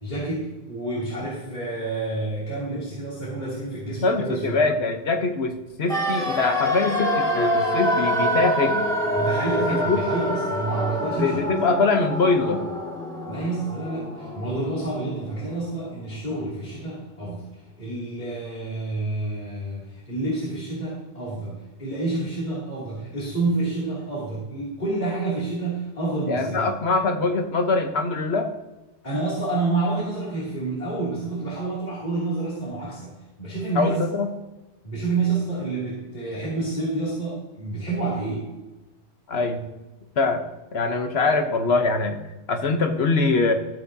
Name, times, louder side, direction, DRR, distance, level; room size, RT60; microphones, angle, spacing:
voice 1, 0.0-4.7 9.1-11.6 13.3-17.5 17.8-26.7 29.0-34.0 34.8-38.5, right 3 dB, 40° left, -8 dB, 2.9 m, -28 dB
voice 2, 4.0-8.9 9.9-10.0 11.2-12.7 26.3-28.5 33.8-34.3 39.3-39.7 40.2-40.4 40.7-42.2 42.5-43.5, left 3 dB, 65° left, 6 dB, 1.2 m, -23 dB
sound 1, 5.9-15.8 16.1-16.2, equal, 5° left, 2.1 m, -26 dB
13.5 x 8.2 x 2.8 m, 1.1 s
omnidirectional pair, 1.2 m